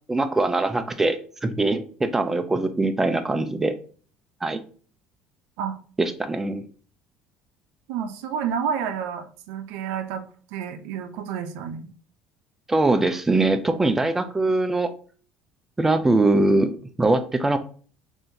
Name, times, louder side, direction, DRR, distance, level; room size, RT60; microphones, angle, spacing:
voice 1, 0.1-3.7 4.4-4.6 6.0-6.6 12.7-14.9 15.8-16.7 17.0-17.6, right 2 dB, 10° right, 9 dB, 0.3 m, -22 dB
voice 2, 7.9-10.2 10.5-11.9, right 7 dB, 80° right, 7 dB, 0.4 m, -30 dB
3.5 x 2.5 x 2.8 m, 0.42 s
cardioid pair, 140°, 3 cm